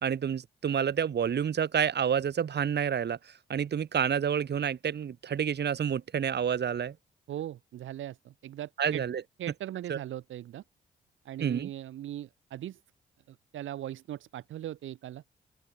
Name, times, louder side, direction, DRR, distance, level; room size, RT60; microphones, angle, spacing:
voice 1, 0.0-6.9 8.8-9.2 9.9-10.0 11.4-11.7, right 8 dB, 55° right, 1.7 m, -29 dB
voice 2, 7.3-9.0 9.4-10.6 11.2-12.8 13.3-15.2, right 12 dB, 70° right, 1.5 m, -39 dB
open air
hypercardioid pair, 40°, 21 cm